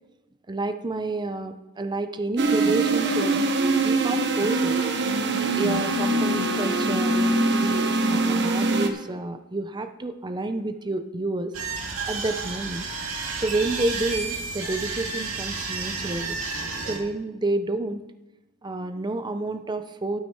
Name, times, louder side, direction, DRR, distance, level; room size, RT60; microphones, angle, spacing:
voice 1, 0.5-3.4 3.8-4.7 5.5-11.5 12.1-12.8 13.4-16.4 16.9-18.0 18.6-20.2, right 2 dB, 20° right, 8 dB, 0.6 m, -29 dB
sound 1, 2.4-8.9, right 2 dB, 55° right, 1.0 m, -23 dB
sound 2, 11.5-17.0, right 4 dB, 75° right, 2.3 m, -31 dB
12.0 x 8.7 x 4.4 m, 1.0 s
head